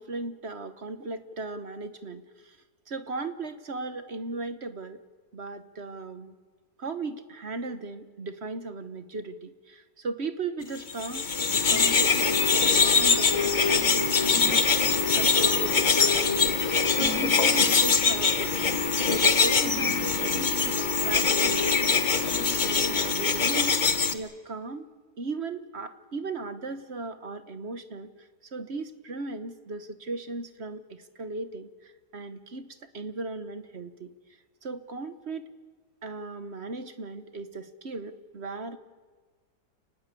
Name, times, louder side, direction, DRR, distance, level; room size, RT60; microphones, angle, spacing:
voice 1, 0.0-2.6 2.9-5.0 5.3-6.3 6.8-18.7 19.0-22.0 22.6-23.9 24.1-24.9 25.2-34.1 34.6-35.5 36.0-38.8, right 3 dB, 45° right, 11 dB, 1.4 m, -37 dB
sound 1, 10.9-24.1, left 5 dB, 35° left, 1.1 m, -23 dB
sound 2, 11.7-23.0, left 5 dB, 55° left, 1.5 m, -35 dB
30.0 x 19.0 x 8.3 m, 1.4 s
omnidirectional pair, 1.7 m